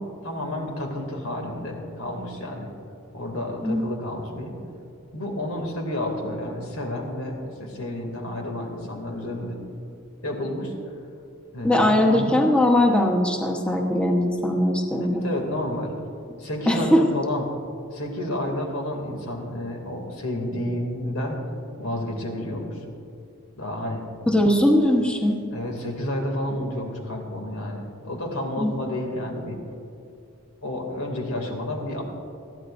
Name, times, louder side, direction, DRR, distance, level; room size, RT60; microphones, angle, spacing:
voice 1, 0.2-2.7 3.1-4.5 5.1-9.6 10.2-10.7 11.5-12.4 15.2-15.9 16.4-17.5 17.9-21.4 21.8-22.8 23.6-24.0 25.5-29.6 30.6-32.0, left 1 dB, 80° left, 1 dB, 2.5 m, -30 dB
voice 2, 11.6-15.3 16.7-17.0 24.3-25.4 28.6-28.7, left 1 dB, 5° left, 0 dB, 1.1 m, -20 dB
21.0 x 14.5 x 2.6 m, 2.5 s
head